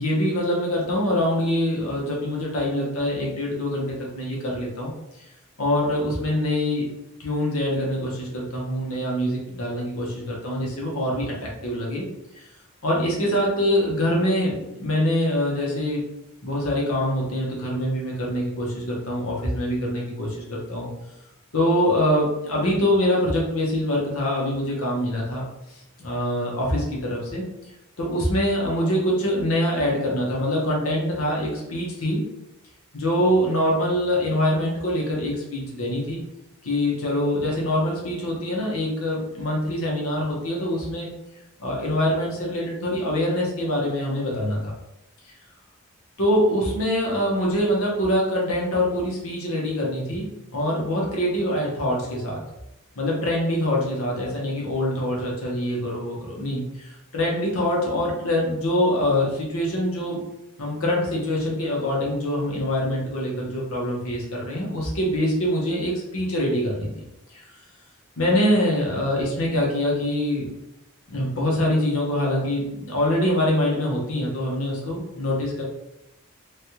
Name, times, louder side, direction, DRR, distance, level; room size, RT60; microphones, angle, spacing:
voice 1, 0.0-4.9 5.6-6.9 7.2-12.0 12.3-12.4 12.8-16.0 16.4-20.9 21.5-25.4 25.7-27.4 28.0-32.2 32.9-36.2 36.6-41.1 41.6-44.7 46.2-52.4 53.0-60.2 60.6-66.9 67.3-67.5 68.2-70.5 71.1-75.6, left 1 dB, 80° left, -3 dB, 0.9 m, -24 dB
3.3 x 2.2 x 2.9 m, 0.89 s
head